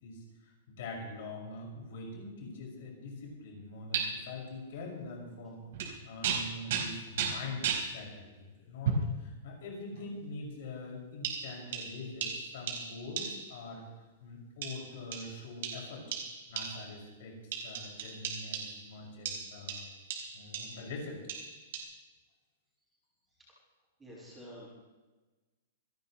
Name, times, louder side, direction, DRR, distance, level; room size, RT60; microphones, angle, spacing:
voice 1, 0.0-5.6 6.0-8.3 8.6-16.0 16.5-19.9 20.3-21.2, left 2 dB, 55° left, -2 dB, 5.9 m, -44 dB
sound 1, 3.9-4.0 5.7-5.9 6.2-7.9 8.8-9.1 9.9-10.1 11.2-13.6 14.6-17.0 17.5-18.9 19.3-20.9 21.3-21.8, right 6 dB, 60° right, 4.5 m, -36 dB
voice 2, 24.0-24.8, equal, 10° right, -6 dB, 6.4 m, -49 dB
27.5 x 12.5 x 3.2 m, 1.2 s
supercardioid pair, 170°, 0 cm